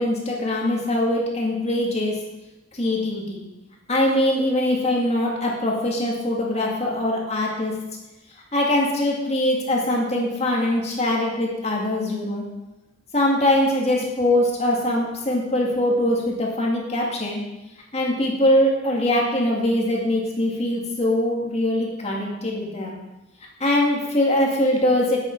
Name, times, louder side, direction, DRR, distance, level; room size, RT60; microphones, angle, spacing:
voice 1, 0.0-2.2 2.7-3.4 3.9-7.8 8.5-12.4 13.1-17.4 17.9-23.0 23.6-25.2, left 1 dB, 30° left, -2 dB, 2.2 m, -22 dB
10.5 x 8.1 x 4.6 m, 1.0 s
head